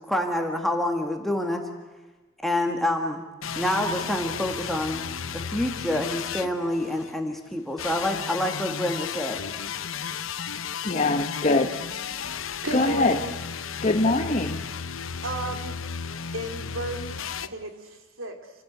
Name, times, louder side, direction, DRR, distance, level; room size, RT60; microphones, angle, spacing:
voice 1, 0.1-1.6 2.4-3.2 3.5-9.4, left 1 dB, ahead, 3 dB, 1.7 m, -27 dB
sound 1, 3.4-7.1 7.8-17.5, left 7 dB, 80° left, 1.0 m, -34 dB
voice 2, 10.8-11.8 12.7-13.2 13.8-14.6, left 2 dB, 35° left, 4 dB, 1.1 m, -23 dB
voice 3, 12.6-13.4 15.2-15.8 16.3-18.5, right 2 dB, 85° right, 6 dB, 3.0 m, -34 dB
28.0 x 16.0 x 8.0 m, 1.2 s
head